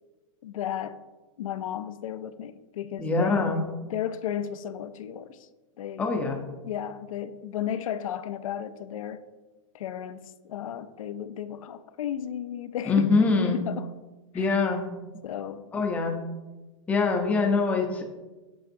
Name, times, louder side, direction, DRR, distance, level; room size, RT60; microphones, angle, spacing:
voice 1, 0.4-1.0 1.4-3.5 3.9-5.5 5.8-6.1 6.6-9.2 9.7-13.9 14.3-14.6 15.2-15.7, left 10 dB, 90° left, 0.4 m, -34 dB
voice 2, 3.0-3.6 6.0-6.4 12.9-13.6 14.3-14.8 15.7-16.2 16.9-18.0, left 4 dB, 10° left, 0.5 m, -24 dB
7.7 x 5.1 x 2.6 m
supercardioid pair, 155°, 17 cm